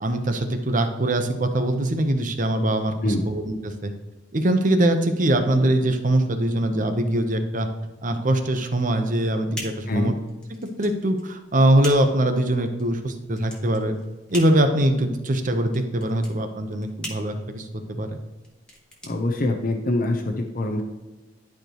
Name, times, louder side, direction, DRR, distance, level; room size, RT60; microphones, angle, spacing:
voice 1, 0.0-3.9 4.3-7.7 8.0-10.1 10.8-14.0 14.3-17.7 18.0-18.1, right 1 dB, 45° right, 7 dB, 0.9 m, -22 dB
sound 1, 8.7-20.0, equal, 5° left, 1.6 m, -42 dB
voice 2, 19.0-20.8, left 1 dB, 50° left, 3 dB, 0.8 m, -24 dB
11.5 x 5.0 x 3.0 m, 1.2 s
head